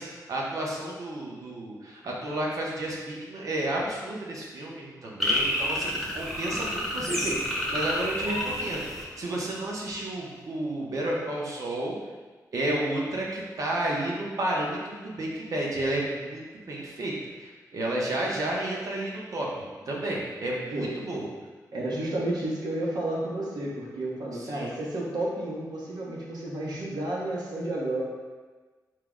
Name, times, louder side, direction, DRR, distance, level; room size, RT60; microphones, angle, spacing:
voice 1, 0.0-11.9 12.5-17.1 17.4-19.5 19.9-21.3 24.3-24.7, right 1 dB, 55° right, -3 dB, 0.7 m, -31 dB
sound 1, 5.2-9.7, left 1 dB, ahead, 0.6 m, -29 dB
voice 2, 21.7-28.0, right 1 dB, 80° right, -4 dB, 0.9 m, -31 dB
4.5 x 2.0 x 3.6 m, 1.3 s
wide cardioid pair, 160°, 7 cm